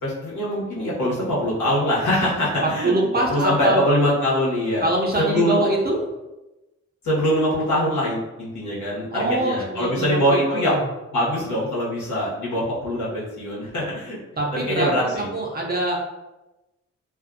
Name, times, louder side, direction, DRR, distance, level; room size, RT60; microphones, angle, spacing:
voice 1, 0.0-2.9 3.3-4.8 5.2-5.6 7.0-10.8 11.1-14.2 14.5-15.3, equal, 80° left, -7 dB, 1.2 m, -23 dB
voice 2, 2.8-3.9 4.8-6.0 9.1-10.8 14.4-14.9 15.1-16.0, right 2 dB, 35° right, -1 dB, 0.6 m, -24 dB
2.5 x 2.3 x 2.5 m, 1.0 s
cardioid pair, 70°, 29 cm